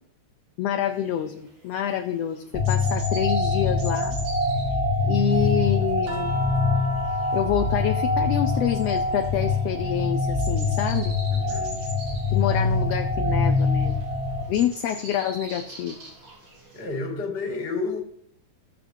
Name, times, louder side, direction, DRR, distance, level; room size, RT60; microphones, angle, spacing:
voice 1, 0.6-4.2 5.0-6.4 7.3-11.2 12.3-14.0 14.5-16.0, left 10 dB, 80° left, 1.5 m, -27 dB
sound 1, 0.8-16.9, right 1 dB, 80° right, 4.6 m, -44 dB
sound 2, 2.5-14.4, left 3 dB, 30° right, 1.3 m, -24 dB
sound 3, 6.1-10.6 10.9-12.5 14.1-14.2, left 1 dB, 55° right, 2.1 m, -40 dB
voice 2, 11.3-11.8 16.7-18.0, left 3 dB, 25° left, 1.5 m, -30 dB
18.0 x 6.6 x 2.7 m
omnidirectional pair, 3.4 m